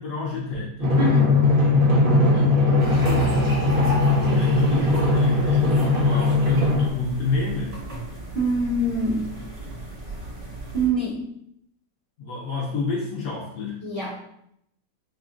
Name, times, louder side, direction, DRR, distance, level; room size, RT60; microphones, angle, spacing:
voice 1, 0.0-1.0 4.3-7.8 12.2-13.8, left 3 dB, 70° left, -4 dB, 0.6 m, -29 dB
Drum, 0.8-6.9, left 2 dB, 85° right, 0.4 m, -19 dB
voice 2, 1.0-1.4 2.2-2.6 8.3-9.3 10.7-11.3 13.8-14.2, right 1 dB, 45° right, -7 dB, 1.3 m, -25 dB
sound 1, 2.8-10.9, equal, 70° right, 1.7 m, -33 dB
5.2 x 2.4 x 2.5 m, 0.74 s
omnidirectional pair, 2.0 m